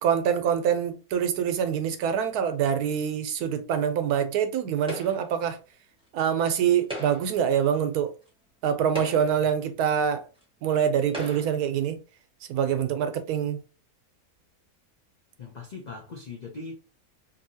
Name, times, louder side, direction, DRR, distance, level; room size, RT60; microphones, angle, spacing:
voice 1, 0.0-5.6 6.1-8.1 8.6-10.2 10.6-12.0 12.5-13.6, right 8 dB, 85° right, 1.1 m, -25 dB
sound 1, 4.9-5.4 6.8-7.4 8.3-8.4 8.8-9.5 10.4-10.5 11.1-11.7, equal, 5° right, 1.0 m, -38 dB
voice 2, 15.4-16.7, left 4 dB, 80° left, 0.4 m, -40 dB
2.7 x 2.7 x 2.7 m
omnidirectional pair, 1.6 m